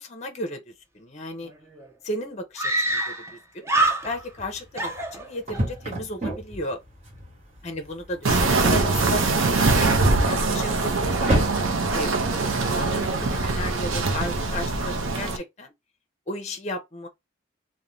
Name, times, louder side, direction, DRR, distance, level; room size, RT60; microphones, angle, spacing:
voice 1, 0.0-1.5 2.0-3.7 4.0-6.8 7.6-9.2 9.8-11.4 11.9-12.1 12.6-15.7 16.3-17.1, left 1 dB, 35° left, 0.6 m, -34 dB
Screaming, 1.5-1.6 1.8-1.9 2.6-3.4 3.6-4.4 4.8-5.7, right 2 dB, 15° right, 0.4 m, -25 dB
sound 1, 4.0-13.7, right 1 dB, 35° right, 0.9 m, -33 dB
sound 2, 8.2-15.4, right 3 dB, 80° right, 0.6 m, -23 dB
2.5 x 2.1 x 3.0 m
head